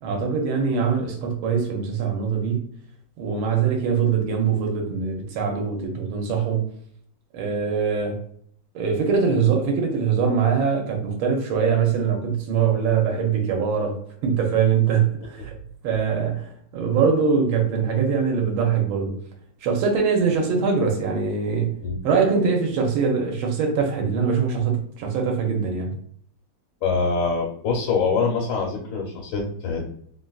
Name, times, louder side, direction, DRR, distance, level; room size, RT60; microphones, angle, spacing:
voice 1, 0.0-2.7 3.2-6.7 7.3-8.2 8.7-15.5 15.8-19.2 19.6-21.8 22.0-26.0, right 6 dB, 80° right, 2 dB, 1.4 m, -23 dB
voice 2, 26.8-29.8, left 4 dB, 75° left, -2 dB, 1.3 m, -24 dB
3.4 x 2.4 x 2.3 m, 0.64 s
omnidirectional pair, 2.2 m